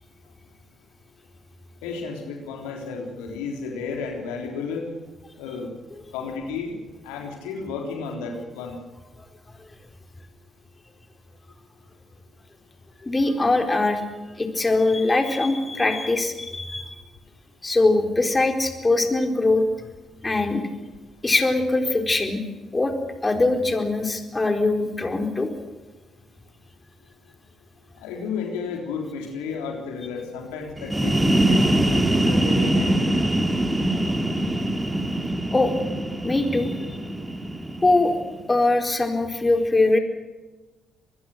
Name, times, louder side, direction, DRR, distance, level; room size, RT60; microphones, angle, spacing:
voice 1, 1.8-4.8 5.4-5.7 6.1-8.8 28.0-33.1, left 5 dB, 75° left, 2 dB, 3.6 m, -32 dB
voice 2, 13.0-14.0 14.4-16.9 17.6-19.6 20.2-20.6 21.2-22.4 22.7-22.9 23.2-25.5 35.5-35.7 36.2-36.8 37.8-38.1 38.5-40.0, left 2 dB, 25° left, 5 dB, 4.2 m, -22 dB
sound 1, 30.8-38.4, right 1 dB, 15° right, 2.8 m, -23 dB
24.5 x 21.0 x 6.7 m, 1.2 s
hypercardioid pair, 45°, 0 cm